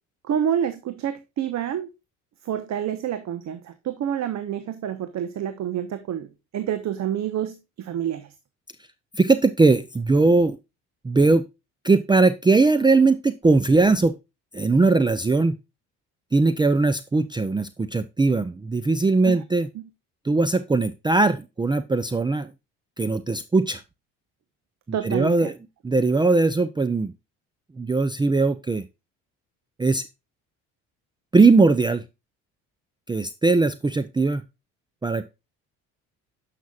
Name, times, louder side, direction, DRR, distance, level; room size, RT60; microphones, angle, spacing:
voice 1, 0.3-1.9 2.5-3.6 3.8-6.3 6.5-8.2 19.3-19.4 24.9-25.5, right 9 dB, 55° right, 11 dB, 1.0 m, -28 dB
voice 2, 9.1-10.6 11.0-11.4 11.8-14.1 14.5-15.6 16.3-19.7 20.2-22.5 23.0-23.8 24.9-25.6 25.8-27.1 27.8-28.8 29.8-30.0 31.3-32.0 33.1-34.4 35.0-35.3, right 3 dB, 15° right, 13 dB, 0.5 m, -20 dB
9.3 x 5.9 x 2.3 m, 0.24 s
supercardioid pair, 80°, 32 cm